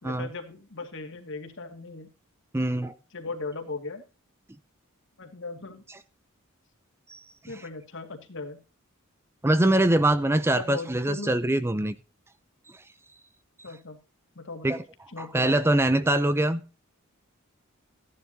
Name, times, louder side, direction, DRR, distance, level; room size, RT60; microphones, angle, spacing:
voice 1, 0.0-2.1 3.1-4.0 5.2-5.8 7.5-8.6 10.5-11.4 13.6-14.0 14.4-14.8 15.1-15.7, left 3 dB, 60° left, 2.1 m, -38 dB
voice 2, 2.5-2.9 7.1-7.2 9.4-11.9 14.6-14.8 15.2-16.6, right 1 dB, 10° right, 0.5 m, -23 dB
15.0 x 11.0 x 2.8 m
head